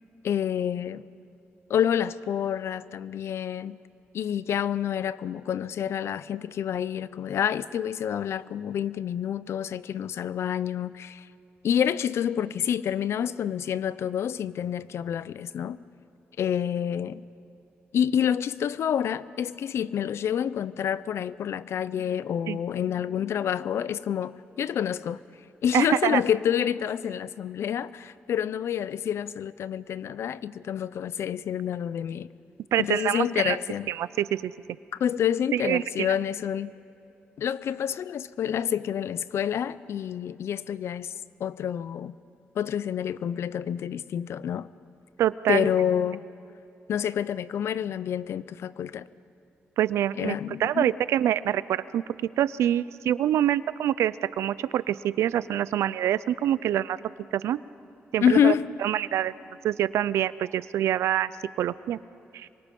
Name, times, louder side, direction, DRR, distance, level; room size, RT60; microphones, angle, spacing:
voice 1, 0.2-1.0 1.7-3.8 4.1-11.3 11.6-15.8 16.4-17.2 17.9-25.2 25.6-32.3 32.8-33.9 35.0-36.7 37.4-41.1 41.4-42.1 42.6-44.7 45.5-46.2 46.9-49.1 50.2-50.9 58.2-58.7, left 9 dB, 75° left, 0.6 m, -28 dB
voice 2, 25.7-26.2 32.7-33.6 33.9-34.5 35.5-36.1 45.2-45.7 49.8-52.0 52.4-57.6 58.1-58.5 58.8-59.3 59.6-61.3 61.6-62.0 62.3-62.5, right 11 dB, 90° right, 0.5 m, -25 dB
27.0 x 24.0 x 5.4 m
cardioid pair, 80°, 5 cm